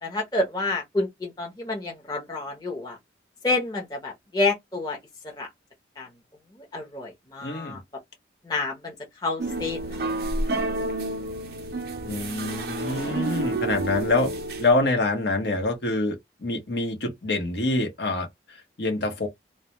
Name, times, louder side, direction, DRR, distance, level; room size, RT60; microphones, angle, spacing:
voice 1, 0.0-3.0 3.4-5.0 5.4-5.5 6.0-6.1 6.6-7.8 8.4-8.9 9.2-10.2 10.5-10.6, left 2 dB, 20° left, 0.6 m, -29 dB
voice 2, 7.4-7.8 12.0-14.3 14.6-19.3, left 2 dB, 70° left, 0.8 m, -26 dB
sound 1, 9.4-14.7, right 2 dB, 60° right, 0.4 m, -29 dB
2.1 x 2.1 x 2.8 m
head